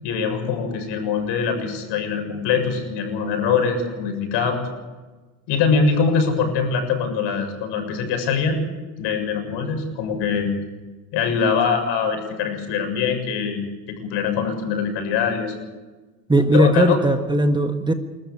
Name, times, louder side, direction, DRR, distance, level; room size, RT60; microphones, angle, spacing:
voice 1, 0.0-4.7 5.5-8.6 9.0-10.5 11.1-13.6 13.9-15.5 16.5-17.0, left 6 dB, 55° left, 6 dB, 7.2 m, -23 dB
voice 2, 16.3-17.9, right 1 dB, 10° right, 6 dB, 1.6 m, -18 dB
30.0 x 13.5 x 8.5 m, 1.3 s
hypercardioid pair, 95°, 49 cm